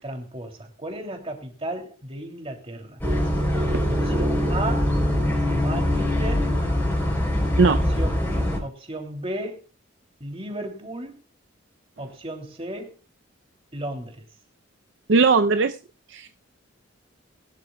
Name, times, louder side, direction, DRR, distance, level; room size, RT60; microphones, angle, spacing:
voice 1, 0.0-3.0 3.8-4.9 5.5-6.5 7.7-9.6 10.2-11.2 12.0-13.0 13.7-14.2, right 1 dB, 30° right, 2.8 m, -34 dB
sound 1, 3.0-8.6, left 1 dB, 10° left, 3.7 m, -23 dB
voice 2, 15.1-15.8 16.1-16.3, right 4 dB, 65° right, 0.6 m, -18 dB
22.0 x 11.5 x 2.3 m
head